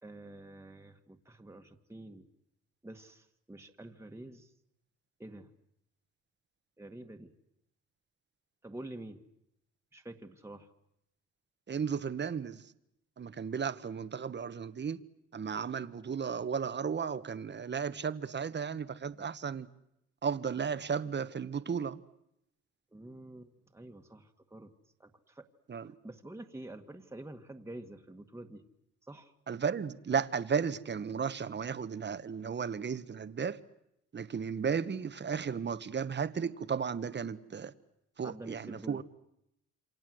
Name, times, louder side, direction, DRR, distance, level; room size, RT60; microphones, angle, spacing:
voice 1, 0.0-2.3 2.8-4.5 5.2-5.5 6.8-7.3 8.6-9.2 9.9-10.7 22.9-24.7 25.0-25.5 25.8-28.6 29.1-29.3 38.2-39.0, right 1 dB, 10° right, 1.9 m, -48 dB
voice 2, 11.7-12.6 13.2-15.0 15.3-19.7 20.2-22.0 25.7-25.9 29.5-33.6 34.1-37.7 38.2-39.0, right 6 dB, 35° right, 1.4 m, -34 dB
28.0 x 26.0 x 7.9 m
cardioid pair, 90°, 30 cm